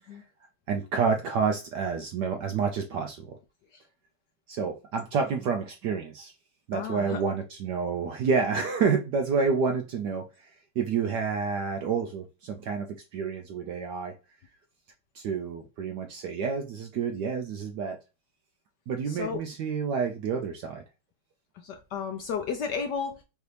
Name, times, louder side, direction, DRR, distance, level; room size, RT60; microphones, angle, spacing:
voice 1, 0.7-3.4 4.5-6.3 6.7-10.5 10.8-14.1 15.1-18.0 18.9-20.8, right 5 dB, 75° right, 1.0 m, -29 dB
voice 2, 6.7-7.2 19.1-19.4 21.5-23.2, left 6 dB, 75° left, 1.0 m, -33 dB
4.8 x 2.7 x 3.2 m
omnidirectional pair, 2.4 m